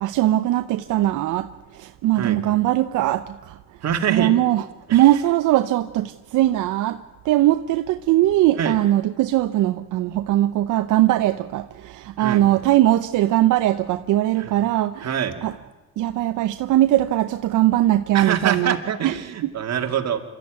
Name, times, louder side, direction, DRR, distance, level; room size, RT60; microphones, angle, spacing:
voice 1, 0.0-3.6 4.1-4.6 4.9-15.1 15.4-15.5 16.0-18.8 19.0-19.1 19.4-19.5, right 14 dB, 85° right, 10 dB, 0.7 m, -20 dB
voice 2, 3.8-4.3 4.9-5.0 8.6-8.8 12.2-12.4 14.4-14.5 15.0-15.4 18.1-20.2, right 8 dB, 60° right, 4 dB, 2.6 m, -25 dB
27.5 x 13.5 x 9.4 m, 1.1 s
cardioid pair, 90°, 30 cm